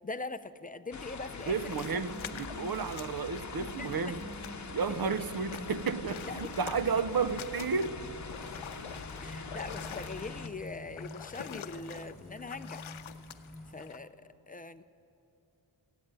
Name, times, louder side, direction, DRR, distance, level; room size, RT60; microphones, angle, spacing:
voice 1, 0.0-1.8 3.6-4.2 5.0-5.1 6.3-6.5 9.2-12.9 13.7-14.8, left 3 dB, 20° left, 11 dB, 0.4 m, -42 dB
sound 1, 0.9-10.5, left 4 dB, 40° left, 0.9 m, -43 dB
sound 2, 1.4-5.0 5.2-14.0, left 9 dB, 80° left, 0.7 m, -47 dB
voice 2, 1.5-4.2 4.7-8.0, right 5 dB, 50° right, 14 dB, 0.6 m, -32 dB
sound 3, 1.6-13.7, left 1 dB, ahead, 2.5 m, -48 dB
14.5 x 9.3 x 8.8 m, 2.8 s
wide cardioid pair, 85°, 47 cm